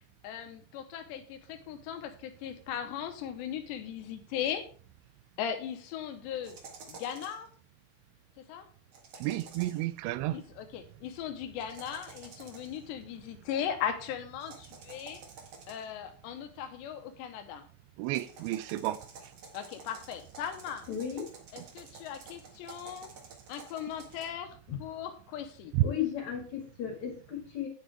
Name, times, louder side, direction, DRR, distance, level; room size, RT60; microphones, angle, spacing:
voice 1, 0.2-4.6 5.4-6.6 6.9-7.5 8.4-8.7 10.3-15.2 15.7-17.6 19.5-20.9 21.5-23.1 23.5-25.7, left 9 dB, 75° left, 3.0 m, -38 dB
sound 1, 6.4-7.5 8.9-9.9 11.6-12.8 14.4-16.0 18.0-24.2, right 4 dB, 55° right, 1.9 m, -50 dB
voice 2, 9.2-10.4 18.0-19.1 25.7-25.8, right 16 dB, 85° right, 2.8 m, -31 dB
voice 3, 20.9-21.3 24.7-24.8 25.8-27.7, left 9 dB, 50° left, 2.7 m, -35 dB
9.3 x 9.2 x 3.4 m
omnidirectional pair, 5.4 m